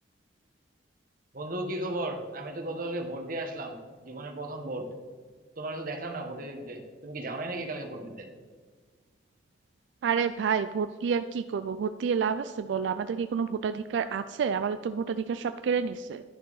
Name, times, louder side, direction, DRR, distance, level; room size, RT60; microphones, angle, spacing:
voice 1, 1.3-4.9 5.6-8.3, right 1 dB, 50° right, 3 dB, 1.2 m, -35 dB
voice 2, 10.0-16.2, right 6 dB, 90° right, 11 dB, 0.3 m, -29 dB
11.0 x 6.4 x 4.0 m, 1.5 s
head